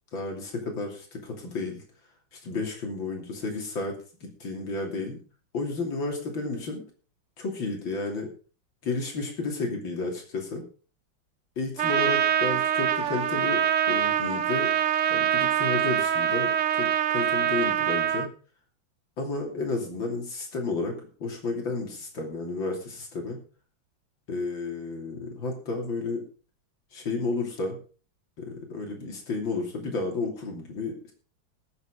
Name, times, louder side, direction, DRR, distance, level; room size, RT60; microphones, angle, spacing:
voice 1, 0.1-1.8 2.3-5.2 5.5-6.8 7.4-8.3 8.8-10.6 11.6-14.7 15.1-18.3 19.2-23.4 24.3-26.2 26.9-27.8 28.4-31.1, left 3 dB, 75° left, 1 dB, 3.6 m, -32 dB
Trumpet, 11.8-18.3, right 10 dB, 70° right, 0.7 m, -24 dB
20.0 x 7.2 x 3.8 m, 0.37 s
omnidirectional pair, 2.1 m